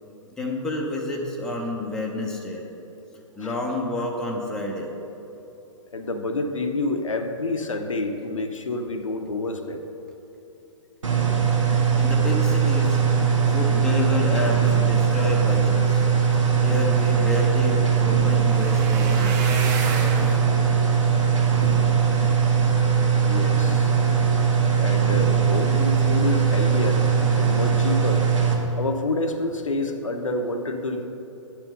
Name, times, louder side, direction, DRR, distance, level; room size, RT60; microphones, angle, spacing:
voice 1, 0.4-2.6 3.4-4.9 12.0-16.1 16.6-19.7, left 2 dB, 5° left, -2 dB, 0.7 m, -30 dB
voice 2, 5.9-9.8 15.1-15.2 23.2-24.0 24.7-27.1 27.4-28.3 28.8-31.1, left 2 dB, 75° left, 5 dB, 0.7 m, -28 dB
sound 1, 11.0-28.5, right 6 dB, 75° right, 1.3 m, -20 dB
sound 2, 16.6-22.8 23.3-23.8 24.2-24.4 24.7-24.8, right 5 dB, 35° right, 0.8 m, -35 dB
9.5 x 4.5 x 5.3 m, 2.9 s
figure-of-eight pair, 120°, 17 cm